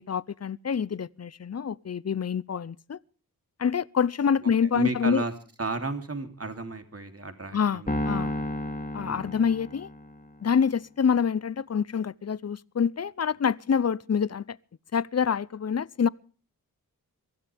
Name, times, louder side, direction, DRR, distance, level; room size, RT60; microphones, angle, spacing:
voice 1, 0.0-3.0 3.6-5.2 7.5-8.3 8.9-9.9 10.4-14.6 14.9-16.1, left 7 dB, 45° left, 0.7 m, -26 dB
voice 2, 4.4-5.3 5.6-8.5 9.0-9.3, right 3 dB, 45° right, 3.2 m, -34 dB
Piano, 7.9-10.3, left 1 dB, 25° left, 2.9 m, -32 dB
24.0 x 15.5 x 3.5 m
wide cardioid pair, 95°, 34 cm